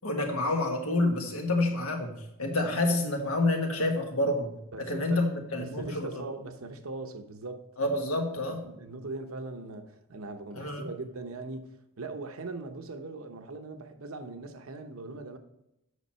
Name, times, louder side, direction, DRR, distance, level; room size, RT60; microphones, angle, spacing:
voice 1, 0.0-4.5 4.8-6.2 7.8-8.6 10.6-10.9, left 2 dB, 80° left, 1.6 m, -28 dB
voice 2, 4.7-5.3 5.6-7.6 8.6-11.7 12.0-15.4, right 3 dB, 75° right, 0.9 m, -40 dB
8.3 x 5.9 x 4.4 m
head